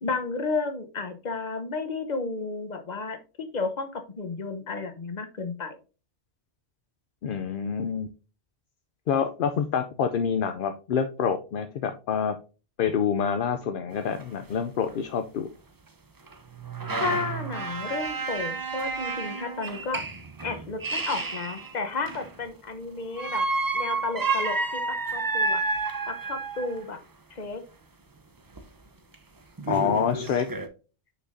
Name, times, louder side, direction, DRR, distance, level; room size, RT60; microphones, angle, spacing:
voice 1, 0.0-5.8 16.9-20.0 20.4-23.4 23.7-25.6 26.1-27.0 27.3-27.6, left 4 dB, 40° left, 8 dB, 1.0 m, -32 dB
voice 2, 7.2-8.1 9.1-12.4 12.8-15.5 29.7-30.5, left 7 dB, 60° left, 8 dB, 0.6 m, -27 dB
sound 1, 13.9-14.0 14.2-14.3 14.9-15.0 16.3-22.4 23.2-26.8 28.6-28.7 29.1-29.2 29.6-30.7, right 3 dB, 25° right, 0.5 m, -30 dB
6.1 x 6.0 x 2.6 m, 0.34 s
omnidirectional pair, 1.2 m